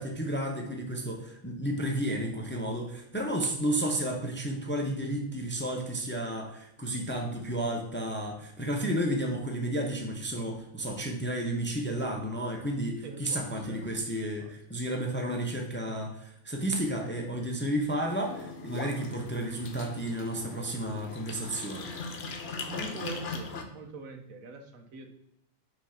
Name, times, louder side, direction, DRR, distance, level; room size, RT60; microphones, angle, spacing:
voice 1, 0.0-21.9, right 1 dB, 10° left, 1 dB, 0.6 m, -32 dB
voice 2, 13.0-13.9 14.4-14.5 22.6-25.1, right 2 dB, 90° right, 5 dB, 1.3 m, -43 dB
sound 1, 18.1-23.6, left 4 dB, 55° left, 1.0 m, -40 dB
6.1 x 3.2 x 5.7 m, 0.81 s
omnidirectional pair, 1.4 m